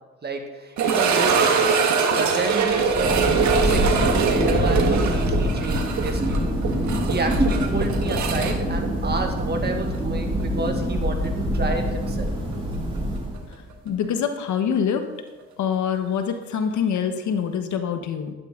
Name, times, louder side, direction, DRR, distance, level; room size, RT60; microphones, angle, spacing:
voice 1, 0.2-6.5 7.0-12.3, right 2 dB, 35° right, 3 dB, 2.1 m, -30 dB
sound 1, 0.8-9.7 9.9-10.0 10.7-10.8 13.3-13.4, right 5 dB, 70° right, 1.7 m, -23 dB
Thunder, 2.6-13.6, equal, 20° right, 4.8 m, -25 dB
voice 2, 13.8-15.1 15.6-18.3, left 7 dB, 70° left, 7 dB, 1.3 m, -25 dB
12.5 x 11.5 x 3.9 m, 1.2 s
cardioid pair, 90°, 30 cm